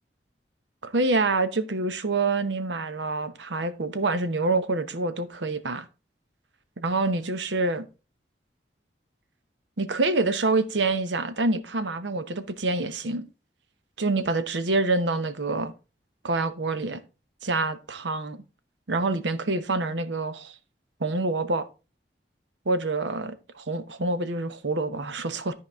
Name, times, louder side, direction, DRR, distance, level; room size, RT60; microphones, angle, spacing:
voice 1, 0.8-5.9 6.8-7.9 9.8-13.2 14.0-15.7 16.2-17.0 17.4-18.4 18.9-20.5 21.0-21.6 22.7-25.5, right 3 dB, 85° right, 0.8 m, -26 dB
12.5 x 4.7 x 3.5 m
head